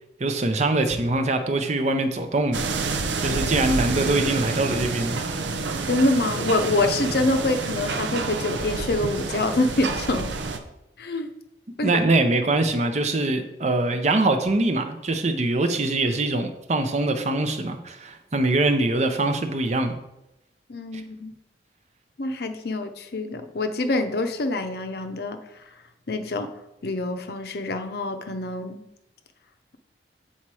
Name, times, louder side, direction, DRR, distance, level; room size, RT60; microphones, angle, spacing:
voice 1, 0.2-2.7 3.2-5.2 11.8-20.0, right 2 dB, 40° right, 6 dB, 0.7 m, -23 dB
sound 1, 2.5-10.6, right 3 dB, 90° right, 0.7 m, -28 dB
voice 2, 5.9-10.3 11.0-11.3 11.8-12.0 20.7-21.3 22.2-25.4 26.1-26.5 26.8-28.8, left 2 dB, 60° left, 7 dB, 0.6 m, -25 dB
7.3 x 4.2 x 4.8 m, 0.88 s
head